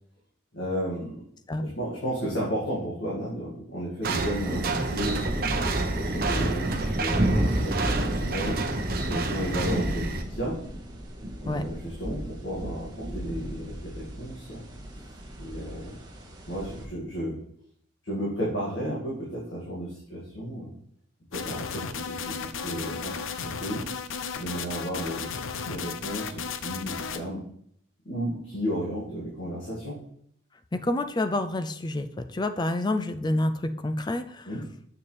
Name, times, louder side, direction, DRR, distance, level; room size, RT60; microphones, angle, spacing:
voice 1, 0.5-1.2 1.6-5.5 5.9-8.6 9.1-10.5 11.4-14.6 15.4-16.0 16.5-17.3 18.0-20.7 21.3-22.3 22.6-23.8 24.3-25.3 25.6-27.4 28.1-30.0 34.5-34.6, equal, 60° left, -6 dB, 2.1 m, -33 dB
sound 1, 4.0-10.2, right 3 dB, 45° right, 0.8 m, -30 dB
sound 2, 4.4-16.8, equal, 20° right, 1.1 m, -32 dB
sound 3, 21.3-27.2, left 6 dB, 75° left, 0.6 m, -34 dB
voice 2, 30.7-34.5, left 1 dB, 20° left, 10 dB, 0.4 m, -28 dB
7.2 x 6.8 x 3.3 m, 0.67 s
head